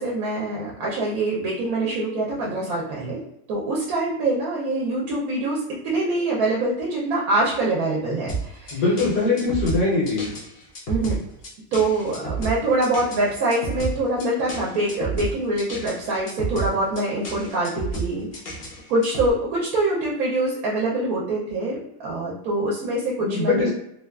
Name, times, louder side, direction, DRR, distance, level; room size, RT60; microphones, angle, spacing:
voice 1, 0.0-3.2 3.5-8.8 10.9-11.2 11.7-18.5 18.9-23.7, right 2 dB, 75° right, -3 dB, 1.0 m, -24 dB
sound 1, 8.3-19.3, right 4 dB, 55° left, 0.7 m, -31 dB
voice 2, 8.7-10.3 23.2-23.7, left 3 dB, 80° left, -5 dB, 1.4 m, -22 dB
3.0 x 2.2 x 2.2 m, 0.79 s
omnidirectional pair, 1.6 m